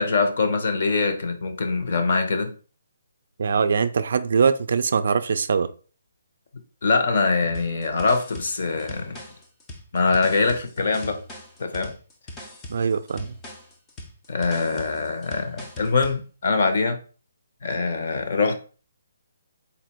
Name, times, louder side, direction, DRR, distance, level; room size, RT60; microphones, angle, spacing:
voice 1, 0.0-2.5 6.8-9.2 9.9-11.2 11.6-11.9 14.3-17.0 17.6-18.5, left 4 dB, 45° left, 0.8 m, -23 dB
voice 2, 3.4-5.7 12.7-13.3, right 5 dB, 50° right, 0.3 m, -22 dB
sound 1, 7.5-16.2, left 1 dB, 10° left, 0.5 m, -41 dB
4.0 x 2.5 x 4.3 m
hypercardioid pair, 175°, 0 cm